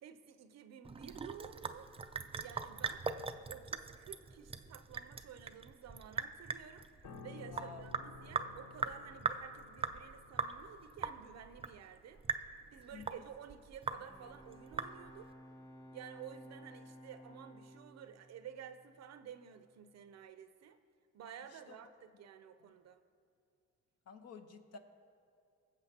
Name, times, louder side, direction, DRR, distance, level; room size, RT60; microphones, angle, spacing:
voice 1, 0.0-1.9 2.4-3.1 3.5-6.9 7.2-12.2 12.7-15.3 15.9-20.8 21.1-23.0, right 8 dB, 60° right, 10 dB, 0.6 m, -52 dB
Sink (filling or washing) / Drip, 0.8-15.3, right 5 dB, 20° right, 0.4 m, -41 dB
Piano, 7.0-16.4 16.7-16.9, left 4 dB, 80° left, 0.8 m, -57 dB
voice 2, 7.5-7.8 12.9-13.2 21.5-21.8 22.6-22.7 24.1-24.8, left 5 dB, 55° left, 6 dB, 1.0 m, -52 dB
Bowed string instrument, 13.9-19.5, equal, 10° left, 1.0 m, -56 dB
21.0 x 7.5 x 2.8 m, 2.5 s
cardioid pair, 90°, 30 cm